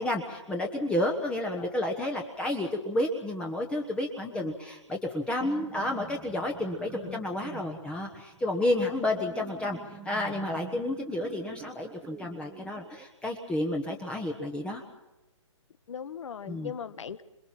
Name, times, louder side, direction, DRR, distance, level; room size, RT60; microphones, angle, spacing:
voice 1, 0.0-9.8 10.0-14.8 16.5-16.7, left 1 dB, 5° left, 2 dB, 1.2 m, -31 dB
sound 1, 5.2-13.1, right 8 dB, 10° right, 0.9 m, -48 dB
voice 2, 15.9-17.2, left 7 dB, 70° left, 14 dB, 1.3 m, -39 dB
27.0 x 20.5 x 5.9 m, 1.1 s
hypercardioid pair, 150°, 16 cm